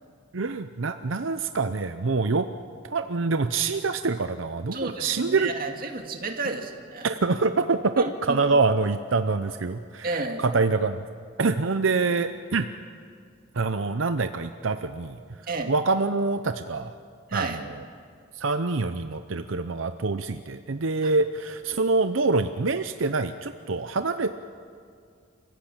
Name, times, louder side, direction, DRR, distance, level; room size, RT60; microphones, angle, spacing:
voice 1, 0.3-2.5 2.8-5.5 7.0-10.1 10.4-11.0 11.4-12.7 13.5-15.2 15.7-16.9 17.3-17.7 18.4-24.3, right 3 dB, 85° right, 9 dB, 0.7 m, -25 dB
voice 2, 4.7-7.1 8.0-8.4 10.0-10.4 15.5-15.7 17.3-17.6 21.0-21.1, right 3 dB, 50° right, 3 dB, 2.3 m, -31 dB
29.5 x 15.5 x 8.8 m, 2.2 s
head